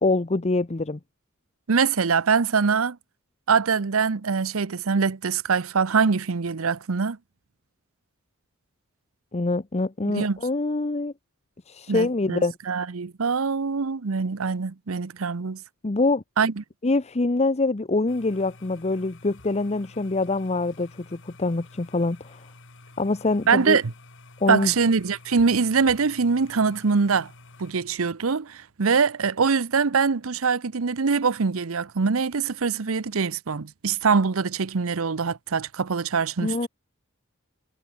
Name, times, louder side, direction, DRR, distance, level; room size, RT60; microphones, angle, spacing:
voice 1, 0.0-1.0 9.3-11.1 11.7-12.5 15.8-16.2 16.8-22.4 23.0-23.8 24.4-24.7 36.4-36.7, left 2 dB, 30° left, 0.8 m, -25 dB
voice 2, 1.7-3.0 3.5-7.2 10.1-10.4 11.9-15.6 16.4-16.6 23.5-23.9 24.5-27.3 27.6-36.7, right 5 dB, 80° right, 0.7 m, -23 dB
sound 1, 18.1-27.7, left 2 dB, 60° left, 2.7 m, -50 dB
head